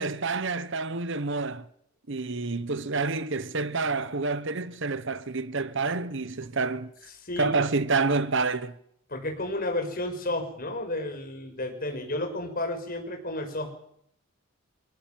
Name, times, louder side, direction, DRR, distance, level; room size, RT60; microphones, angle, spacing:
voice 1, 0.0-1.7 2.1-6.9 7.4-8.8, right 3 dB, 55° right, 1.0 m, -28 dB
voice 2, 9.1-13.7, left 1 dB, 40° left, 6.0 m, -32 dB
24.0 x 19.5 x 7.7 m
head